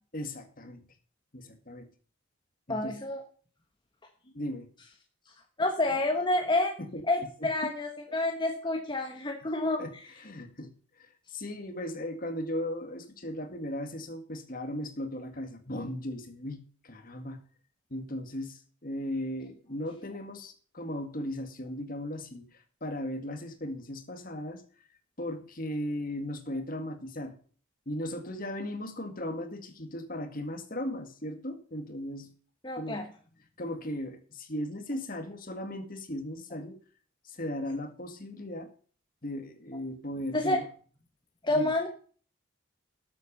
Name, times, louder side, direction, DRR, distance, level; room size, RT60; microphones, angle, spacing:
voice 1, 0.1-0.9 1.3-1.9 2.7-3.0 4.3-4.7 6.8-6.9 7.4-7.5 8.1-8.2 9.8-9.9 10.2-17.4 17.9-24.6 25.2-27.4 27.9-32.3 32.8-33.0 33.6-36.8 37.2-38.7 39.2-40.7 41.5-41.7, left 1 dB, 40° left, 8 dB, 1.9 m, -37 dB
voice 2, 2.7-3.2 5.6-6.7 7.1-9.8 32.6-33.0 40.3-40.6 41.4-41.9, left 2 dB, 20° left, 3 dB, 1.2 m, -28 dB
12.5 x 8.1 x 5.5 m, 0.42 s
head